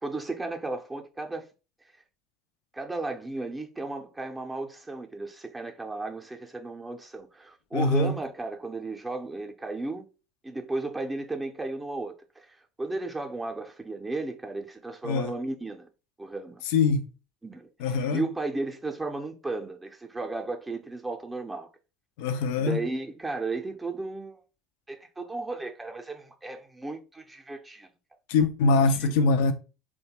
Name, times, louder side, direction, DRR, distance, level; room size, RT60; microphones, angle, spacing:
voice 1, 0.0-1.5 2.7-10.1 10.4-15.9 16.2-16.6 17.4-21.7 22.6-24.4 24.9-27.9 29.0-29.1, right 3 dB, 15° right, 0.5 m, -34 dB
voice 2, 7.7-8.2 15.0-15.3 16.7-17.1 17.8-18.2 22.2-22.8 28.3-29.5, left 4 dB, 75° left, 0.4 m, -23 dB
3.1 x 2.2 x 2.9 m
hypercardioid pair, 75°, 0 cm